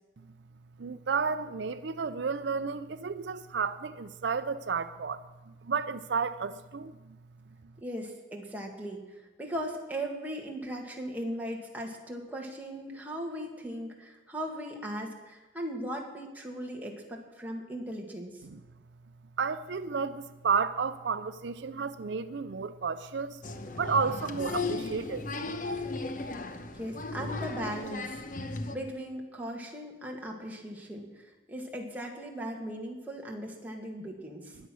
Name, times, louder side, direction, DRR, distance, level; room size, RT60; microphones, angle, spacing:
voice 1, 0.8-5.2 5.5-7.2 18.4-18.6 19.4-23.4 23.8-25.3, right 5 dB, 75° right, 13 dB, 0.5 m, -32 dB
voice 2, 7.8-18.4 26.7-34.6, equal, 10° right, -1 dB, 2.0 m, -38 dB
Applause, 23.4-28.8, left 3 dB, 45° left, 0.9 m, -36 dB
21.0 x 8.1 x 6.3 m, 1.2 s
head